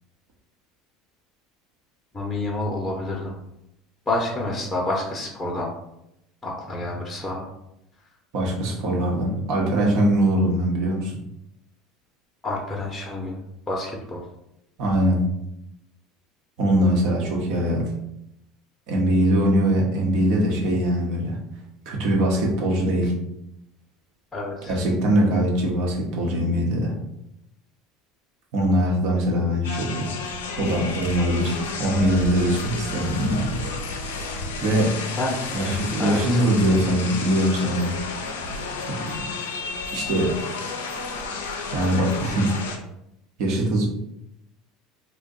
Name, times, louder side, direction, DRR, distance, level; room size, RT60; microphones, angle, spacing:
voice 1, 2.1-3.3 4.1-5.7 6.4-7.5 12.4-13.4 13.7-14.2 24.3-24.8 35.2-35.4 36.0-36.8, left 2 dB, 20° left, -3 dB, 0.7 m, -28 dB
voice 2, 8.3-11.1 14.8-15.2 16.6-17.9 18.9-21.4 21.9-23.1 24.7-26.9 28.5-30.1 30.6-33.6 34.1-34.3 34.6-35.0 35.5-38.0 38.9-39.2 39.9-40.4 41.7-42.6 43.4-43.9, right 1 dB, 65° right, -1 dB, 0.9 m, -22 dB
sound 1, 29.6-42.8, left 4 dB, 90° left, 0.4 m, -32 dB
2.5 x 2.2 x 3.9 m, 0.83 s
hypercardioid pair, 90°, 0 cm